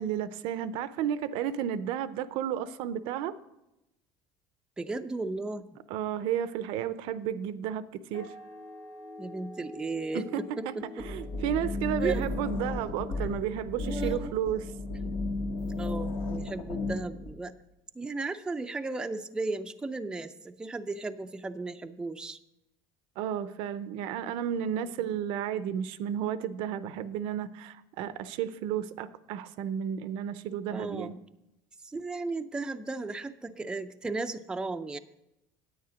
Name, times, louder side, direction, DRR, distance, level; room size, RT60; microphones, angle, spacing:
voice 1, 0.0-3.3 5.9-8.3 10.3-10.4 11.0-14.7 23.2-31.1, right 9 dB, 70° right, 14 dB, 0.5 m, -32 dB
voice 2, 4.8-5.6 9.2-11.1 12.0-12.2 13.1-13.2 13.8-14.4 15.0-15.1 15.7-17.5 18.0-22.4 30.7-31.2 31.8-35.0, right 3 dB, 10° right, 8 dB, 0.4 m, -35 dB
sound 1, 8.1-13.6, left 2 dB, 70° left, 2.4 m, -47 dB
sound 2, 11.0-17.3, left 2 dB, 90° left, 1.6 m, -34 dB
9.5 x 8.7 x 5.1 m, 0.91 s
cardioid pair, 130°, 9 cm